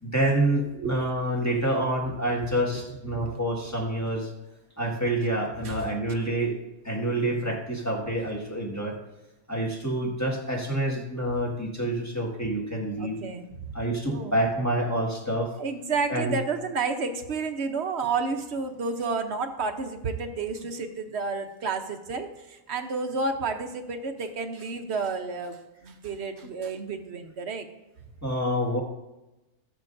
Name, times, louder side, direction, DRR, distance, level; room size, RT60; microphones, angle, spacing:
voice 1, 0.0-4.3 4.8-6.6 6.8-9.0 9.5-13.2 13.7-15.5 16.1-16.4 28.2-28.8, right 1 dB, 10° left, -2 dB, 1.5 m, -27 dB
voice 2, 13.0-13.7 14.1-14.4 15.6-27.7, right 4 dB, 55° right, 7 dB, 1.0 m, -31 dB
17.0 x 7.4 x 2.6 m, 1.0 s
omnidirectional pair, 1.6 m